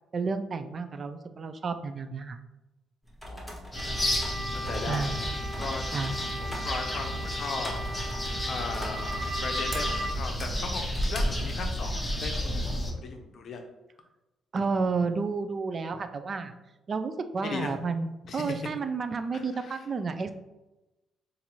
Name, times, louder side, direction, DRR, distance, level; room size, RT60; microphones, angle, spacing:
voice 1, 0.1-2.4 4.9-5.2 5.9-6.2 14.5-16.5 16.9-20.3, right 4 dB, 45° right, 10 dB, 0.3 m, -31 dB
sound 1, 3.0-11.6, equal, ahead, 1.1 m, -43 dB
voice 2, 3.3-4.1 4.6-5.3 5.6-5.8 6.4-7.8 8.5-13.6 17.4-17.7 18.2-18.6 19.3-19.9, left 4 dB, 60° left, 5 dB, 0.5 m, -37 dB
sound 2, 3.7-12.9, equal, 15° left, 0.7 m, -32 dB
sound 3, 3.7-10.1, equal, 75° right, 0.7 m, -38 dB
3.9 x 2.5 x 2.9 m, 1.0 s
cardioid pair, 90°, 0 cm